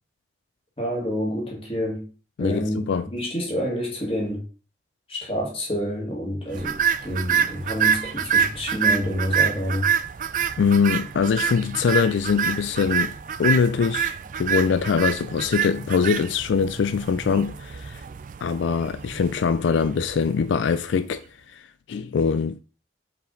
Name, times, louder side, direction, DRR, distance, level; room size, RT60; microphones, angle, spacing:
voice 1, 0.8-2.1 2.4-4.4 5.1-9.9, equal, 30° left, 1.9 m, -28 dB
voice 2, 2.4-3.1 10.6-18.0 18.4-21.2 21.5-22.6, left 6 dB, 80° left, 0.3 m, -23 dB
sound 1, 6.6-20.9, right 7 dB, 45° right, 0.3 m, -27 dB
5.2 x 4.8 x 3.8 m
head